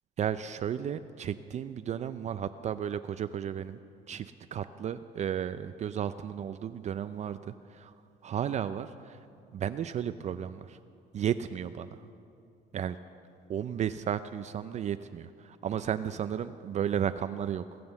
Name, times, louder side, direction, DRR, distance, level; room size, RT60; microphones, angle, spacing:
voice 1, 0.2-3.8 4.1-7.9 8.2-9.2 9.5-10.8 11.1-11.9 12.7-13.0 13.5-17.6, right 9 dB, 45° right, 11 dB, 0.4 m, -33 dB
21.0 x 7.7 x 7.1 m, 2.5 s
cardioid pair, 110°, 17 cm